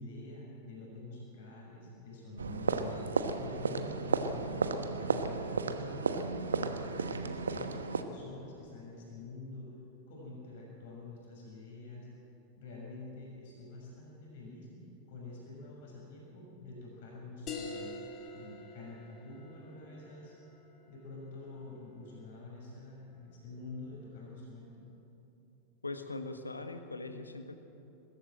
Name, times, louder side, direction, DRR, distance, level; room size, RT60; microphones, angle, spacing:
voice 1, 0.0-3.0 3.4-4.7 5.0-9.7 10.1-12.1 12.6-14.7 15.1-17.9 18.3-20.3 20.9-24.8, left 2 dB, 55° left, -3 dB, 6.3 m, -47 dB
sound 1, 2.4-8.0, right 4 dB, 70° right, 1.1 m, -33 dB
sound 2, 17.5-22.5, left 3 dB, 35° left, 2.3 m, -46 dB
voice 2, 25.8-27.6, left 3 dB, 80° left, 8 dB, 1.4 m, -41 dB
21.5 x 16.0 x 7.7 m, 2.9 s
figure-of-eight pair, 90°, 0 cm